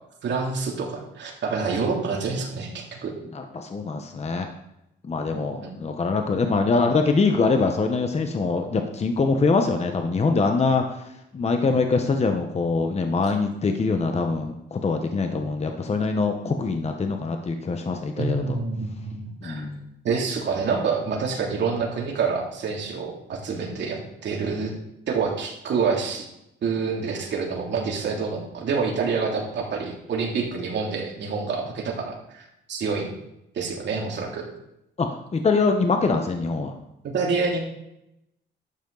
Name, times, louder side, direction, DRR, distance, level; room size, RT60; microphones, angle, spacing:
voice 1, 0.2-3.1 5.3-5.8 18.1-19.7 20.0-24.7 25.1-26.3 26.6-32.4 32.7-33.1 33.5-34.5 37.0-37.6, right 5 dB, 65° right, 0 dB, 2.8 m, -27 dB
voice 2, 3.3-4.5 5.0-11.0 11.3-18.6 19.4-19.9 35.0-36.8, left 4 dB, 35° left, 5 dB, 1.1 m, -24 dB
12.0 x 8.2 x 4.0 m, 0.84 s
cardioid pair, 90°, 20 cm